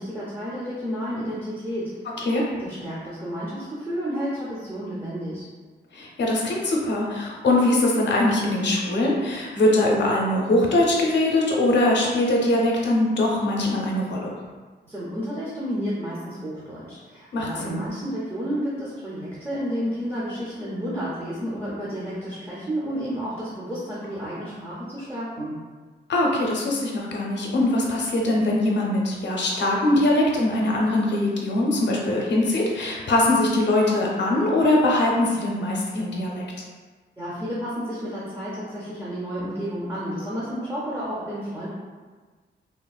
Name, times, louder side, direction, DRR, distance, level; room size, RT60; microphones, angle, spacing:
voice 1, 0.0-1.9 2.6-5.5 14.9-25.5 37.2-41.7, equal, 15° right, -8 dB, 0.5 m, -31 dB
voice 2, 5.9-14.3 17.3-17.8 26.1-36.4, left 1 dB, 75° left, -2 dB, 0.6 m, -22 dB
3.4 x 2.0 x 2.3 m, 1.4 s
wide cardioid pair, 120°, 19 cm